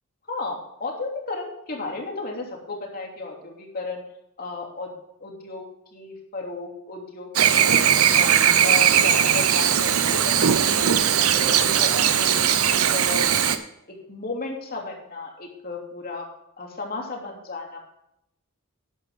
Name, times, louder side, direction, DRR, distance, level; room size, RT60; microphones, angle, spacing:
voice 1, 0.3-4.0 4.4-4.9 5.2-7.3 8.1-10.8 11.2-11.5 11.8-12.4 12.7-13.2 13.9-16.3 16.6-17.8, left 3 dB, 45° left, 0 dB, 2.8 m, -34 dB
Chirp tweet / Buzz, 7.3-13.6, right 9 dB, 85° right, 0.8 m, -19 dB
12.0 x 10.5 x 3.7 m, 0.82 s
head